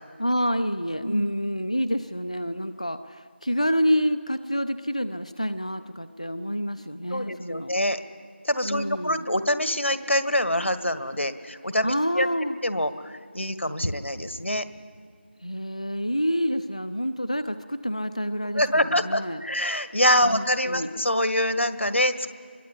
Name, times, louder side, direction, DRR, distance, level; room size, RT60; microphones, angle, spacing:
voice 1, 0.2-7.8 8.6-9.3 11.8-12.6 15.4-19.4 20.2-20.9, equal, 35° left, 11 dB, 0.6 m, -28 dB
voice 2, 7.1-8.0 8.4-12.3 12.6-14.7 18.6-22.3, left 1 dB, 85° left, 11 dB, 1.7 m, -25 dB
24.5 x 22.5 x 8.5 m, 2.1 s
figure-of-eight pair, 180°, 6 cm